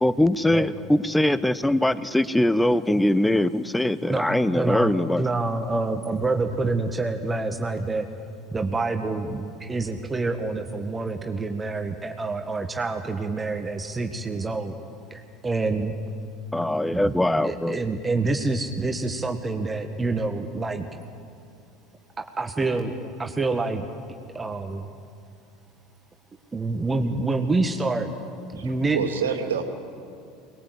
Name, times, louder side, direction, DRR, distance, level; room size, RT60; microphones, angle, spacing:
voice 1, 0.0-5.2 16.5-17.8, left 1 dB, 5° left, 16 dB, 0.9 m, -22 dB
voice 2, 4.5-8.1 8.5-14.7 15.1-15.9 16.9-17.1 17.4-21.0 22.2-23.8 24.3-24.9 26.5-28.1 28.5-29.0, right 3 dB, 20° right, 5 dB, 1.6 m, -27 dB
voice 3, 28.6-29.6, right 7 dB, 80° right, 5 dB, 2.4 m, -28 dB
24.0 x 20.5 x 8.1 m, 2.4 s
hypercardioid pair, 75°, 0 cm